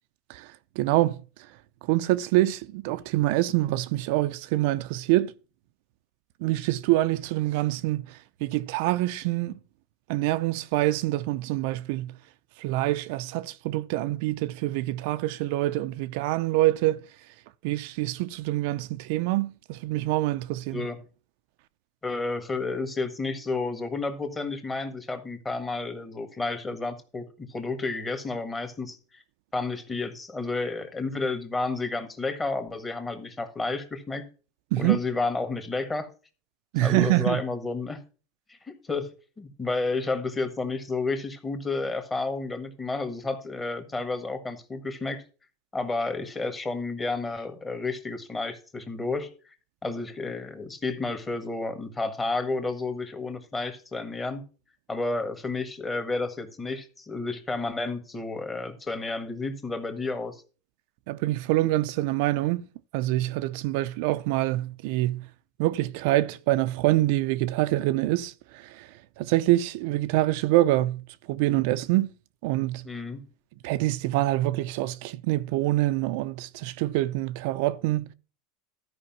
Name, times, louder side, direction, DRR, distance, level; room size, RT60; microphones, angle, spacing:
voice 1, 0.3-1.2 1.8-5.3 6.4-9.6 10.1-12.1 12.6-17.0 17.6-20.9 34.7-35.0 36.7-37.4 61.1-62.6 62.9-65.3 65.6-71.0 71.3-72.1 72.4-72.9 73.6-78.1, right 16 dB, 65° right, 0.5 m, -25 dB
voice 2, 22.0-29.2 29.5-34.2 34.8-36.1 36.8-38.0 38.6-39.1 39.4-45.2 45.7-49.3 49.8-54.4 54.9-60.4 72.8-73.2, left 3 dB, 15° left, 1.6 m, -31 dB
13.0 x 5.1 x 5.9 m
supercardioid pair, 145°, 0 cm